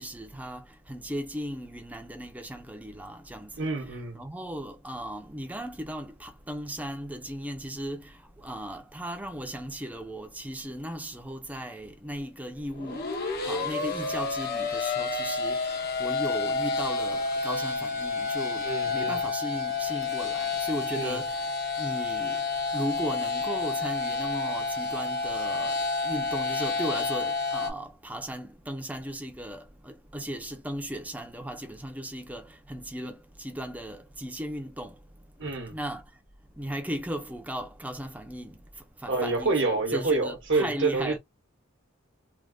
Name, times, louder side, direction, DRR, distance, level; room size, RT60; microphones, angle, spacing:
voice 1, 0.0-3.6 4.1-13.1 13.4-22.4 22.7-25.8 26.0-35.0 35.7-36.0 36.6-38.6 39.0-41.2, equal, 5° right, 0.6 m, -37 dB
voice 2, 3.6-4.2 18.6-19.2 20.9-21.2 35.4-35.8 39.1-41.2, right 3 dB, 60° right, 1.0 m, -28 dB
sound 1, 12.7-27.7, left 4 dB, 50° left, 0.9 m, -29 dB
3.5 x 2.3 x 2.4 m
head